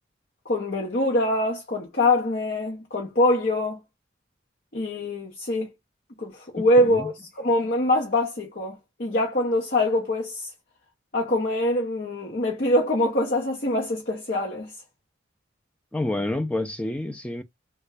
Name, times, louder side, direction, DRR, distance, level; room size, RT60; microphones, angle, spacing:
voice 1, 0.5-3.8 4.7-5.7 6.2-10.5 11.1-14.7, left 1 dB, 50° left, 0.8 m, -24 dB
voice 2, 6.6-7.1 15.9-17.4, left 1 dB, 5° left, 0.4 m, -29 dB
3.4 x 2.2 x 3.3 m
head